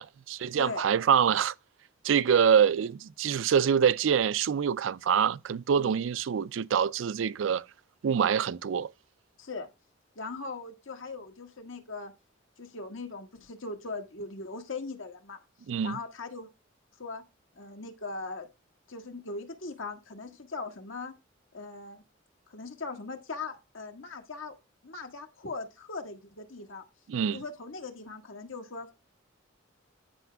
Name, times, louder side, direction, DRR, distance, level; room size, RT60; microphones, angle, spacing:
voice 1, 0.0-1.5 2.0-7.7 8.0-8.9 15.7-16.0 27.1-27.4, right 7 dB, 70° right, 0.4 m, -25 dB
voice 2, 9.4-9.7 10.1-12.1 12.6-15.4 15.8-16.5 17.0-17.2 17.5-18.5 18.9-21.1 21.5-22.0 22.5-24.5 24.8-26.8 27.3-28.9, left 3 dB, 85° left, 1.6 m, -39 dB
14.0 x 5.0 x 2.3 m
head